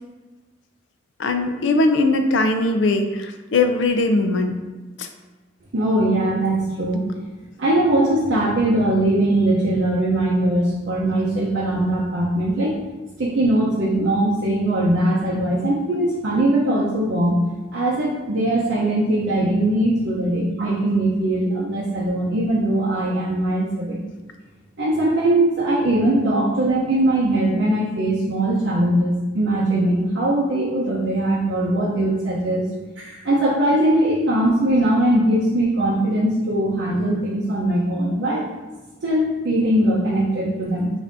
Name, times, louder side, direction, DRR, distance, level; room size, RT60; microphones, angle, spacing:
voice 1, 1.2-4.6 5.0-5.1, left 2 dB, 80° left, 6 dB, 0.4 m, -20 dB
voice 2, 5.7-7.0 7.6-12.7 13.2-17.4 17.7-24.0 24.8-32.6 33.0-38.4 39.0-40.9, right 1 dB, 75° right, -5 dB, 0.6 m, -20 dB
5.4 x 2.6 x 2.6 m, 1.2 s
head